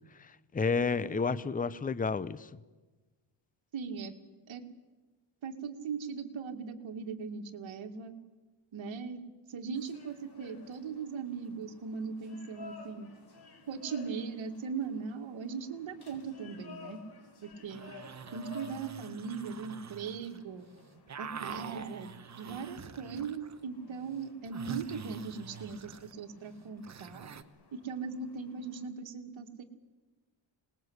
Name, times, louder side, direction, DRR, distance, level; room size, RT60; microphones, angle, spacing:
voice 1, 0.2-2.5, left 4 dB, 15° left, 16 dB, 0.7 m, -31 dB
voice 2, 3.7-4.1 4.5-4.6 5.4-8.2 8.7-9.2 9.5-13.1 13.7-17.0 17.4-17.9 18.3-20.7 21.2-27.3 27.7-29.6, right 5 dB, 65° right, 5 dB, 2.4 m, -39 dB
sound 1, 9.7-28.8, left 5 dB, 50° left, 4.8 m, -55 dB
sound 2, 17.5-20.4 20.7-23.6 23.9-27.4, right 6 dB, 35° right, 1.2 m, -46 dB
26.5 x 20.5 x 8.1 m, 1.2 s
cardioid pair, 115°, 50 cm